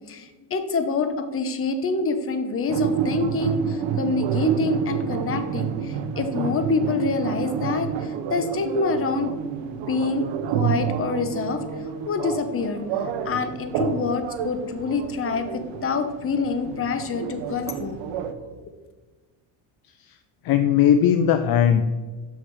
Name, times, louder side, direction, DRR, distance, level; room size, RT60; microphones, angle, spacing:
voice 1, 0.1-9.3 9.9-10.3 10.5-11.6 12.1-18.0 18.4-18.5, left 4 dB, 30° left, 8 dB, 0.8 m, -26 dB
sound 1, 2.7-18.3, right 8 dB, 65° right, 0.9 m, -29 dB
voice 2, 20.4-21.9, left 9 dB, 55° left, 9 dB, 0.5 m, -19 dB
6.4 x 6.2 x 4.7 m, 1.3 s
cardioid pair, 125°, 46 cm